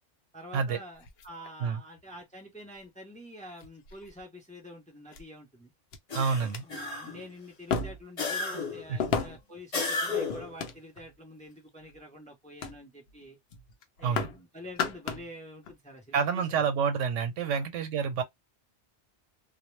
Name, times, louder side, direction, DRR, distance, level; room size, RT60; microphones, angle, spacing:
voice 1, 0.3-5.7 6.6-13.4 14.0-16.6 17.5-17.7, left 1 dB, 10° left, 0.5 m, -47 dB
sound 1, 0.9-2.0 2.9-3.0 3.6-4.2 5.1-5.2 5.9-6.0 6.4-6.6 7.7-8.2 9.0-9.6 10.3-11.1 11.7-12.0 12.6-12.8 13.1-13.3 13.5-14.4 14.7-15.3 15.6-15.8, left 5 dB, 65° left, 0.8 m, -34 dB
sound 2, 6.1-7.3 8.2-8.9 9.7-10.6, left 4 dB, 35° left, 0.9 m, -33 dB
voice 2, 6.1-6.6 8.9-9.0 14.0-14.3 16.1-18.2, right 6 dB, 85° right, 1.0 m, -28 dB
2.2 x 2.1 x 3.1 m
omnidirectional pair, 1.2 m